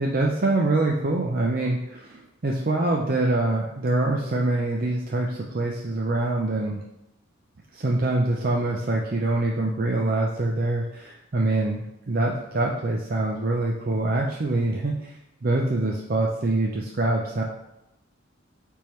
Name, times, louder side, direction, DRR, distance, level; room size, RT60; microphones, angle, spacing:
voice 1, 0.0-6.8 7.7-17.4, right 2 dB, 45° right, -1 dB, 0.6 m, -25 dB
8.7 x 3.6 x 3.1 m, 0.87 s
head